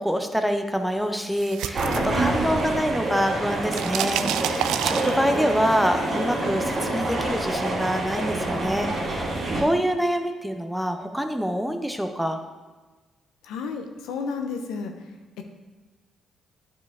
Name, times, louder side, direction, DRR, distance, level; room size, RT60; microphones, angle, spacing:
voice 1, 0.0-12.4, equal, ahead, 6 dB, 0.7 m, -26 dB
sound 1, 1.1-2.8 3.1-5.6, right 10 dB, 90° right, 0.3 m, -29 dB
sound 2, 1.7-9.6, right 2 dB, 50° right, 2.5 m, -27 dB
voice 2, 13.4-14.9 15.4-15.5, left 5 dB, 90° left, 4 dB, 0.7 m, -31 dB
9.3 x 4.9 x 3.5 m, 1.3 s
cardioid pair, 75°, 0 cm